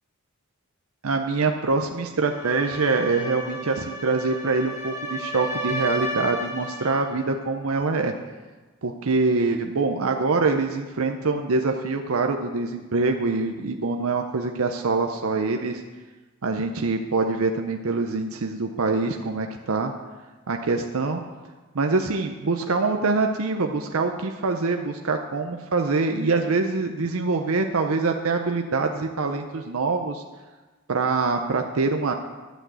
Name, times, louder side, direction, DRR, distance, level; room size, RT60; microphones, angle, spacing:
voice 1, 1.0-8.1 8.8-15.8 16.4-19.9 20.5-21.2 21.7-30.2 30.9-32.1, right 3 dB, 75° right, 4 dB, 0.7 m, -24 dB
sound 1, 2.2-7.1, equal, 50° left, 2.7 m, -33 dB
11.5 x 6.2 x 8.1 m, 1.3 s
head